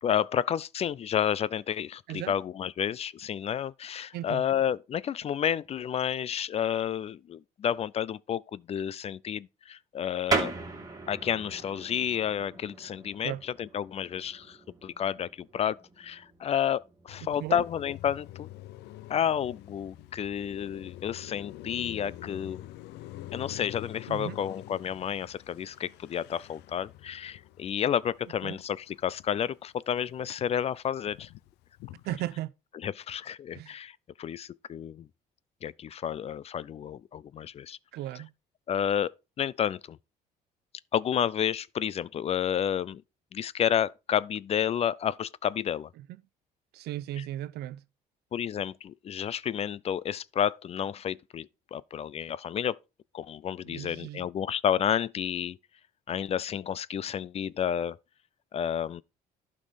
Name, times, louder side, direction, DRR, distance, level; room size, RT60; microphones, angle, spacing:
voice 1, 0.0-10.5 11.1-18.5 19.1-22.7 23.3-31.3 32.8-35.1 35.6-37.8 38.7-40.0 40.9-43.0 43.3-45.9 48.3-52.8 53.1-55.6 56.1-58.0 58.5-59.0, left 9 dB, 40° left, 0.4 m, -30 dB
voice 2, 4.1-4.5 13.2-13.4 17.4-17.6 24.1-24.4 28.4-28.6 32.0-32.5 33.5-33.7 37.9-38.3 46.0-46.2 46.7-47.8 53.6-54.3, right 14 dB, 75° right, 0.6 m, -36 dB
sound 1, 10.3-20.5, right 4 dB, 20° right, 2.3 m, -39 dB
Car passing by, 17.1-29.5 29.9-32.4, left 15 dB, 85° left, 0.6 m, -46 dB
11.5 x 5.3 x 4.0 m
cardioid pair, 110°, 17 cm